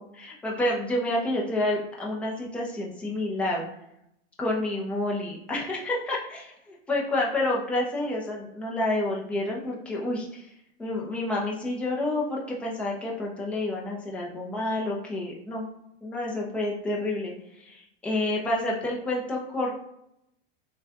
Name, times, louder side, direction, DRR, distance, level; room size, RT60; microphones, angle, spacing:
voice 1, 0.0-3.6 4.4-10.4 10.8-15.7 16.0-17.3 17.6-19.8, left 1 dB, 5° left, -3 dB, 0.5 m, -29 dB
6.3 x 2.2 x 3.5 m, 0.79 s
supercardioid pair, 170°, 30 cm